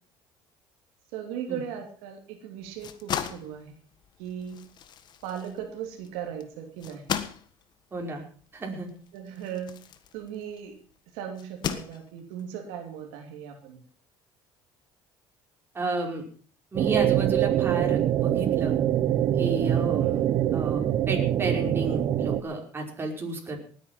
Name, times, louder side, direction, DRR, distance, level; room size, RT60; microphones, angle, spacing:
voice 1, 1.1-3.7 4.2-4.6 5.2-7.1 9.1-9.7 10.1-10.7 11.1-13.8, right 9 dB, 85° right, 4 dB, 2.8 m, -37 dB
sound 1, 2.6-10.7 11.4-12.4, left 8 dB, 45° left, 1.5 m, -37 dB
voice 2, 7.9-8.2 8.5-8.9 15.7-16.2 16.7-18.7 19.4-20.2 20.5-23.6, right 3 dB, 20° right, 1 dB, 5.2 m, -32 dB
sound 2, 16.8-22.4, right 11 dB, 55° right, 0.9 m, -24 dB
19.0 x 9.3 x 5.8 m, 0.44 s
cardioid pair, 110°, 10 cm